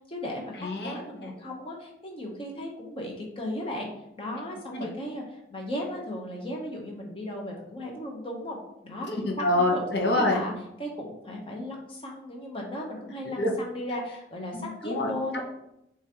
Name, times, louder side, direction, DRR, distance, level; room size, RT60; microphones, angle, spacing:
voice 1, 0.1-3.9 4.2-5.2 5.5-8.6 8.8-9.1 9.6-9.8 10.1-10.5 10.8-15.4, left 1 dB, 30° left, -1 dB, 0.8 m, -36 dB
voice 2, 0.6-1.3 4.7-4.9 9.1-10.4 13.2-13.5 14.5-15.4, left 1 dB, 65° left, 1 dB, 0.8 m, -27 dB
6.7 x 2.5 x 2.9 m, 0.83 s
head